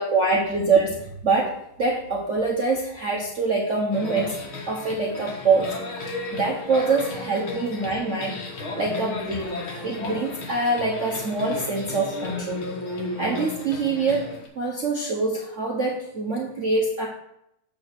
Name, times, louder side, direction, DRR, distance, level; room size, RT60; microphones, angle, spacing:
voice 1, 0.0-1.5 1.8-4.3 4.7-9.5 9.8-12.6 13.2-14.2 14.6-17.1, right 3 dB, 50° right, -1 dB, 1.0 m, -24 dB
sound 1, 3.9-14.5, left 2 dB, 75° left, 2.1 m, -34 dB
7.7 x 4.1 x 6.2 m, 0.79 s
omnidirectional pair, 2.3 m